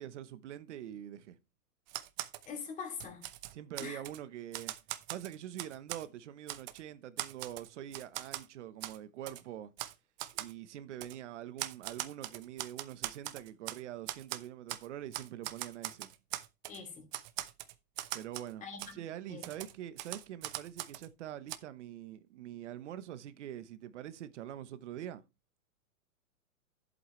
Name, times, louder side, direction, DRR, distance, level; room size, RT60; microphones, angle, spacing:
voice 1, 0.0-1.4 3.5-4.7 5.1-9.7 10.3-16.1 18.1-18.6 18.9-25.2, right 11 dB, 50° right, 1.1 m, -44 dB
Typewriter, 1.9-2.5 2.9-4.2 4.5-6.1 6.5-6.8 7.2-8.5 8.8-9.0 9.3-9.4 9.8-9.9 10.2-10.5 11.0-11.2 11.6-13.8 14.1-14.9 15.1-16.8 17.1-18.5 18.8-18.9 19.4-21.1 21.5-21.6, right 15 dB, 30° right, 0.8 m, -41 dB
voice 2, 2.5-3.2 3.8-4.0 16.7-17.1 18.6-19.0 19.3-19.5, left 5 dB, 15° left, 2.7 m, -43 dB
11.0 x 7.9 x 3.2 m
hypercardioid pair, 155°, 44 cm